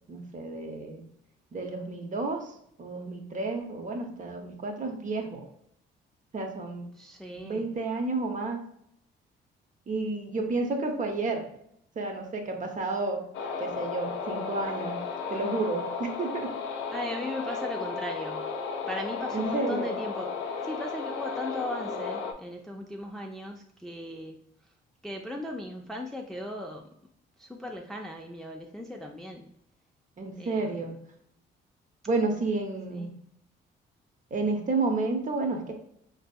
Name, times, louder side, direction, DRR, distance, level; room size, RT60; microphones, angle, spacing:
voice 1, 0.1-1.0 1.5-5.4 6.3-6.9 7.4-8.6 9.9-11.5 12.0-13.3 13.6-15.0 15.3-16.5 19.3-20.0 30.2-31.0 32.1-33.1 34.3-35.7, right 3 dB, 40° right, 3 dB, 0.7 m, -31 dB
voice 2, 7.0-7.7 16.9-18.5 18.8-20.3 20.6-24.4 25.0-26.9 27.4-29.5 30.4-30.9 32.9-33.1, left 1 dB, ahead, 2 dB, 0.3 m, -37 dB
sound 1, 13.3-22.3, left 5 dB, 85° left, 0.4 m, -34 dB
3.9 x 2.6 x 2.2 m, 0.72 s
cardioid pair, 90°, 20 cm